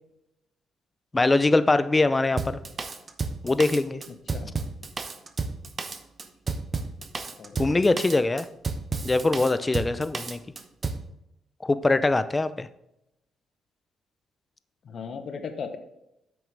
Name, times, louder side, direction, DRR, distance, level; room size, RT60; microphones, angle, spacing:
voice 1, 1.1-2.6 3.4-4.0 7.6-8.5 9.0-10.4 11.6-12.7, left 2 dB, 20° left, 13 dB, 0.5 m, -22 dB
Drum kit, 2.4-11.1, right 4 dB, 35° right, 0.9 m, -32 dB
voice 2, 7.4-8.0 14.9-15.8, left 6 dB, 55° left, 8 dB, 0.9 m, -37 dB
8.9 x 6.1 x 3.3 m, 0.86 s
cardioid pair, 90°, 0 cm